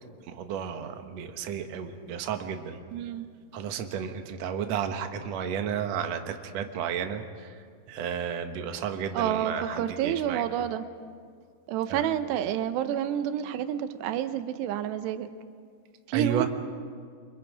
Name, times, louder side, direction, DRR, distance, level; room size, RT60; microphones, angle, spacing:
voice 1, 0.3-2.8 3.5-7.5 7.9-10.4 11.9-12.1 16.1-16.5, right 8 dB, 65° right, 6 dB, 1.7 m, -32 dB
voice 2, 2.9-3.3 9.1-10.9 11.7-15.3 16.1-16.5, right 10 dB, 90° right, 10 dB, 3.0 m, -29 dB
29.5 x 25.5 x 5.0 m, 2.1 s
omnidirectional pair, 4.7 m